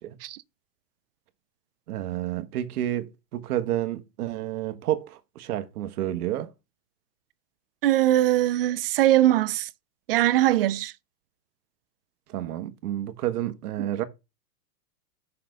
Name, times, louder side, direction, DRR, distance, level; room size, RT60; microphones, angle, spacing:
voice 1, 1.9-6.5 12.3-14.0, right 12 dB, 65° right, 1.3 m, -30 dB
voice 2, 7.8-9.7 10.1-10.9 13.8-13.9, right 14 dB, 40° right, 0.4 m, -21 dB
6.0 x 5.8 x 6.5 m
hypercardioid pair, 145°, 48 cm